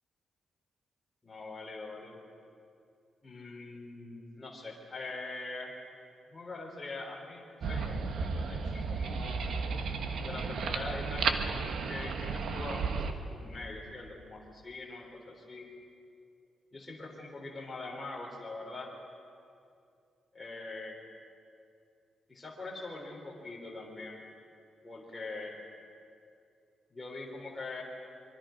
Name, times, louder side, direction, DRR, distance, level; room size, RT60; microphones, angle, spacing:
voice 1, 1.2-2.2 3.2-5.7 6.3-9.5 10.2-11.3 11.7-15.7 16.7-18.9 20.3-21.0 22.3-24.2 24.8-25.6 26.9-27.8, left 3 dB, 15° left, -3 dB, 3.7 m, -43 dB
sound 1, 7.6-13.1, right 5 dB, 65° right, 1.4 m, -33 dB
25.0 x 23.5 x 5.2 m, 2.4 s
wide cardioid pair, 155°, 0 cm